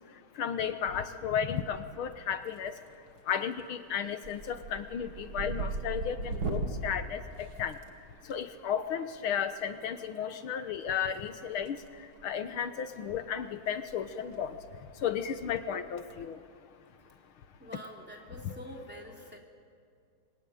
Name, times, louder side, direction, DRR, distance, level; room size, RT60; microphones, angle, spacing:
voice 1, 0.4-2.8 3.3-7.8 8.3-11.8 12.2-14.6 15.0-16.4 18.4-18.5, left 8 dB, 75° left, 10 dB, 1.9 m, -34 dB
sound 1, 1.6-2.1 2.4-3.0 3.3-3.6 3.9-8.3 9.7-9.8 11.1-11.9 12.2-12.4 12.9-13.0 13.3-13.4 13.7-13.9 14.2-14.3 15.8-16.1, right 3 dB, 65° right, 2.8 m, -38 dB
voice 2, 17.6-19.4, equal, 5° right, 0 dB, 3.6 m, -46 dB
27.0 x 23.5 x 9.3 m, 2.3 s
omnidirectional pair, 2.4 m